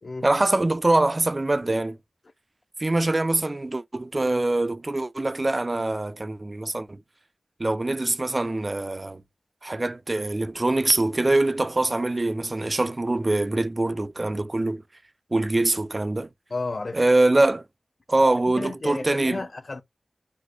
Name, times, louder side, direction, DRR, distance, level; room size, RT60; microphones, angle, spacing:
voice 1, 0.2-2.0 2.8-7.0 7.6-9.2 9.6-14.8 15.3-16.3 16.9-17.6 18.1-19.4, right 2 dB, 30° right, 0.4 m, -23 dB
voice 2, 16.5-17.0 18.6-19.8, left 3 dB, 50° left, 0.4 m, -32 dB
4.1 x 2.5 x 4.5 m
wide cardioid pair, 90°, 0 cm